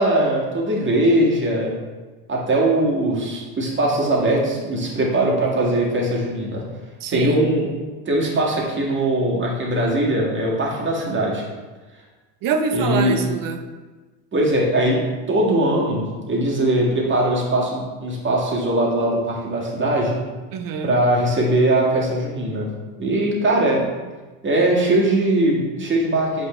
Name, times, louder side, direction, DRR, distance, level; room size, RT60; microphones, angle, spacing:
voice 1, 0.0-1.7 2.3-6.6 7.1-7.7 8.1-11.4 12.7-13.1 14.3-20.2 20.8-22.7 23.0-23.9 24.4-26.5, right 1 dB, 25° right, -3 dB, 1.9 m, -20 dB
voice 2, 7.0-7.5 12.4-13.6 20.5-21.0, right 5 dB, 45° right, 6 dB, 0.9 m, -24 dB
8.3 x 4.9 x 3.3 m, 1.3 s
supercardioid pair, 110°, 48 cm